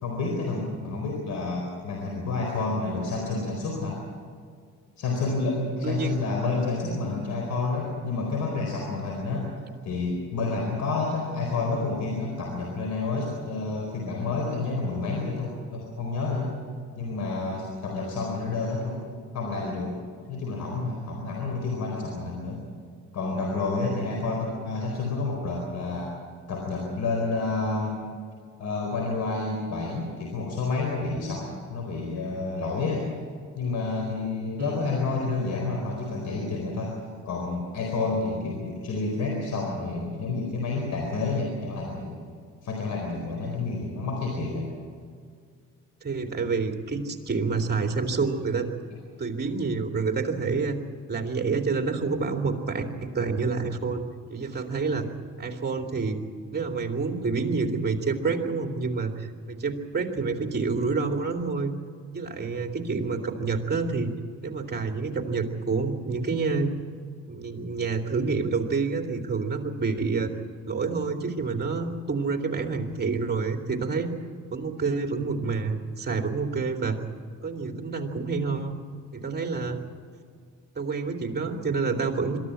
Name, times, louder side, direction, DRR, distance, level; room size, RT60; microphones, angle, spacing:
voice 1, 0.0-4.0 5.0-9.5 9.8-16.5 17.0-19.0 19.3-20.0 20.3-22.6 23.1-26.1 26.5-28.0 28.6-33.1 33.6-42.2 42.6-44.7, left 3 dB, 70° left, 1 dB, 4.4 m, -29 dB
voice 2, 5.8-6.2 34.6-34.9 46.0-48.7 49.2-50.8 51.1-54.0 54.3-55.1 55.4-56.2 56.5-61.7 62.1-64.1 64.4-66.7 67.3-70.3 70.7-74.1 74.5-77.0 77.4-78.8 79.1-79.8 80.7-82.4, right 4 dB, 35° right, 3 dB, 2.8 m, -28 dB
22.5 x 14.0 x 9.8 m, 2.1 s
cardioid pair, 90°, 30 cm